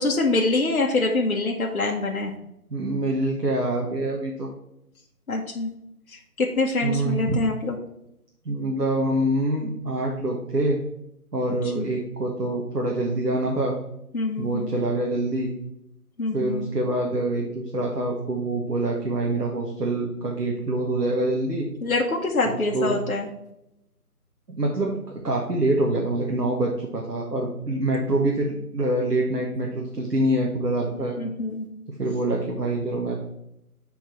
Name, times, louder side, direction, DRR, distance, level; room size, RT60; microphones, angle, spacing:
voice 1, 0.0-2.3 5.3-5.7 6.4-7.7 11.7-11.9 14.1-14.8 16.2-16.6 21.8-23.3 31.2-31.7, left 2 dB, 65° left, 0 dB, 1.2 m, -25 dB
voice 2, 2.7-4.5 6.8-7.4 8.4-10.8 11.3-13.8 14.4-15.5 16.3-21.7 22.4-23.0 24.5-31.2 32.0-33.1, right 1 dB, 90° right, -1 dB, 1.6 m, -25 dB
7.3 x 4.5 x 4.3 m, 0.81 s
figure-of-eight pair, 165°, 47 cm